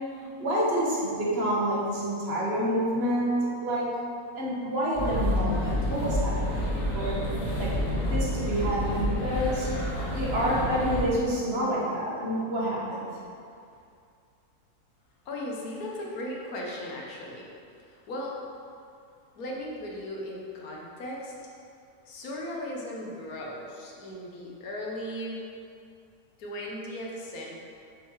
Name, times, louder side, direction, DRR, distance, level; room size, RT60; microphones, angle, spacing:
voice 1, 0.2-3.9 4.4-7.2 7.6-7.7 8.0-9.7 10.1-13.1, equal, 45° right, -6 dB, 1.5 m, -28 dB
sound 1, 4.9-11.0, left 1 dB, 50° left, 1.5 m, -29 dB
voice 2, 15.2-17.5 17.8-18.4 19.3-21.3 22.0-25.4 26.4-27.5, left 1 dB, 70° left, -2 dB, 1.5 m, -37 dB
7.2 x 5.5 x 3.1 m, 2.4 s
omnidirectional pair, 1.6 m